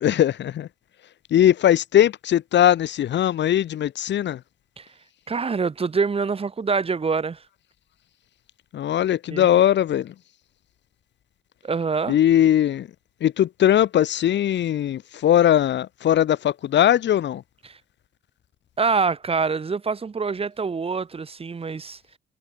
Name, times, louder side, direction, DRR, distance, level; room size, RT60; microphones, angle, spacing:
voice 1, 0.0-0.7 1.3-4.4 8.7-10.1 12.1-12.9 13.2-17.4, left 11 dB, 65° left, 1.2 m, -20 dB
voice 2, 5.3-7.4 9.3-9.5 11.6-12.2 17.6-17.8 18.8-22.0, right 5 dB, 30° right, 1.1 m, -25 dB
cardioid pair, 90°, 20 cm